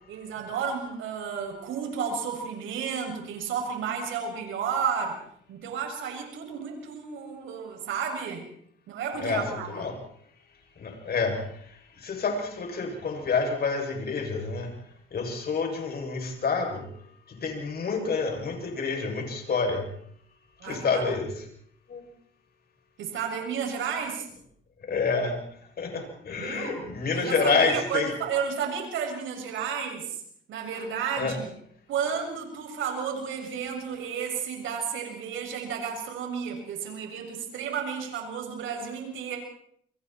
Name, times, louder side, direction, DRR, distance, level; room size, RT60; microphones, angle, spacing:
voice 1, 0.1-5.1 5.5-8.4 8.9-9.9 20.6-21.1 23.0-24.3 25.9-26.1 26.4-26.8 27.1-30.2 30.5-31.5 31.9-39.4, right 7 dB, 80° right, 2 dB, 7.1 m, -32 dB
voice 2, 9.2-10.0 10.8-11.4 12.0-14.7 15.1-16.9 17.3-19.9 20.6-21.3 21.9-22.0 24.8-25.4 25.8-28.1 31.2-31.4, left 4 dB, 50° left, 2 dB, 7.6 m, -28 dB
30.0 x 24.5 x 4.5 m, 0.66 s
cardioid pair, 90°, 20 cm